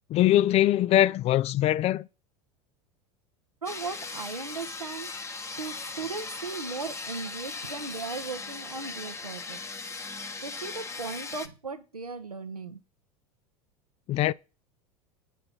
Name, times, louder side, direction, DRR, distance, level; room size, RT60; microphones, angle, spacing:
voice 1, 0.1-2.1 14.1-14.3, left 13 dB, 35° left, 0.5 m, -22 dB
voice 2, 3.6-5.1 5.6-9.6 10.4-12.8, right 4 dB, 90° right, 1.3 m, -37 dB
sound 1, 3.7-11.5, left 4 dB, 15° left, 1.0 m, -38 dB
9.0 x 6.7 x 5.6 m
figure-of-eight pair, 80°, 19 cm